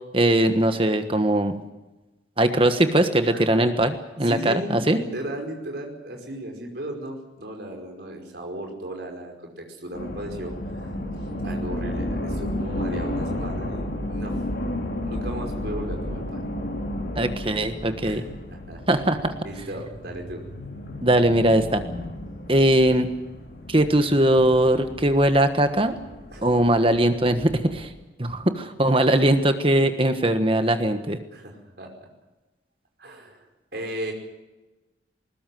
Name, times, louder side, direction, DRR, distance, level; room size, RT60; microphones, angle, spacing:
voice 1, 0.1-1.6 2.4-5.0 17.1-18.2 18.9-19.3 21.0-21.8 22.5-23.1 23.7-25.9 26.4-27.9 28.2-31.2, right 1 dB, 30° right, 8 dB, 1.3 m, -20 dB
voice 2, 3.3-3.7 4.2-10.9 11.4-14.4 15.0-16.4 18.0-18.8 19.4-20.4 26.3-26.5 31.3-31.9 33.0-34.1, right 1 dB, 60° right, 3 dB, 5.3 m, -36 dB
sound 1, 9.9-27.9, left 1 dB, 65° left, 4.5 m, -33 dB
20.5 x 20.0 x 7.7 m, 1.1 s
head